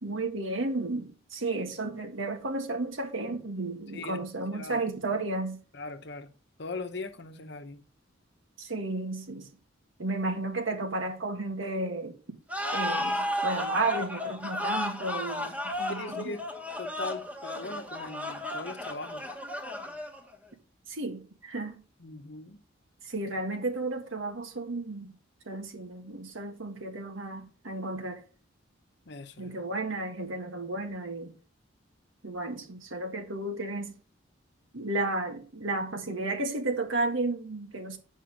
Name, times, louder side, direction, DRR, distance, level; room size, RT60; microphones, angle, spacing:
voice 1, 0.0-5.6 8.6-9.5 10.0-12.2 12.7-16.4 20.9-21.8 23.0-25.1 25.4-28.2 29.4-31.3 32.2-34.0 34.7-38.0, right 2 dB, 80° right, 1.7 m, -33 dB
voice 2, 3.9-5.2 5.7-6.3 6.6-7.8 15.9-16.4 16.8-19.2 22.0-22.6 29.1-29.6, left 3 dB, 60° left, 0.9 m, -40 dB
sound 1, 12.5-20.3, left 1 dB, 10° right, 1.2 m, -33 dB
8.9 x 5.5 x 5.1 m
head